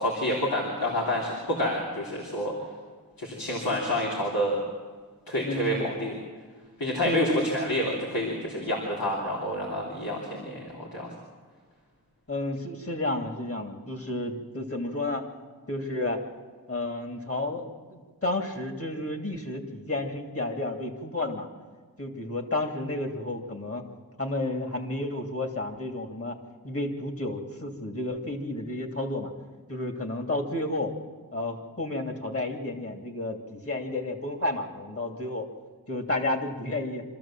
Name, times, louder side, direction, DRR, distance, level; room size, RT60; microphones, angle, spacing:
voice 1, 0.0-2.5 3.2-4.6 5.3-6.1 6.8-11.1, left 1 dB, 90° left, -3 dB, 3.5 m, -28 dB
voice 2, 5.4-5.9 7.0-7.5 12.3-15.2 15.7-16.2 16.7-21.5 22.0-23.9 24.2-26.4 26.6-29.3 29.7-30.9 31.3-35.5 35.9-37.0, left 2 dB, 40° left, 4 dB, 2.8 m, -31 dB
25.5 x 14.0 x 7.5 m, 1.5 s
wide cardioid pair, 70°, 35 cm